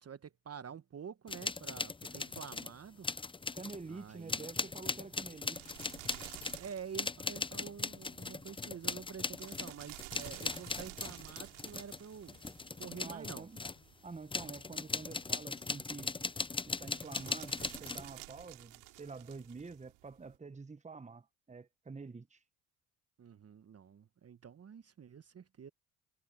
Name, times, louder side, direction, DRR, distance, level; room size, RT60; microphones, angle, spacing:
voice 1, 0.0-3.1 3.9-4.5 6.6-12.4 12.8-13.5 23.2-25.7, right 7 dB, 35° right, 1.2 m, -48 dB
sound 1, 1.3-2.7 3.0-3.9 4.3-13.8 14.3-18.1, left 4 dB, 10° left, 0.6 m, -39 dB
sound 2, 3.4-20.4, right 24 dB, 75° right, 3.2 m, -54 dB
voice 2, 3.5-5.7 13.0-13.6 14.0-16.2 16.7-22.4, right 4 dB, 15° right, 1.3 m, -48 dB
hypercardioid pair, 60°, 42 cm